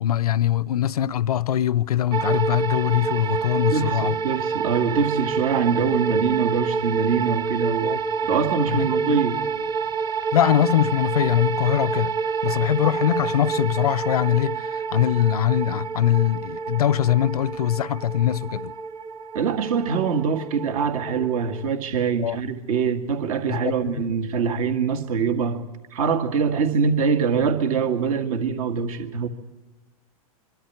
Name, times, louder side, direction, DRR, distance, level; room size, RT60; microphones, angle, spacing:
voice 1, 0.0-4.2 7.8-8.0 8.7-9.2 10.3-12.1 12.4-18.7 22.2-22.4 23.5-24.1, left 11 dB, 85° left, 0.6 m, -22 dB
sound 1, 2.1-21.7, right 6 dB, 25° right, 0.8 m, -28 dB
voice 2, 3.7-7.9 8.3-9.4 19.3-25.6 25.9-29.3, right 6 dB, 70° right, 2.0 m, -24 dB
23.5 x 13.0 x 9.5 m
hypercardioid pair, 115°, 19 cm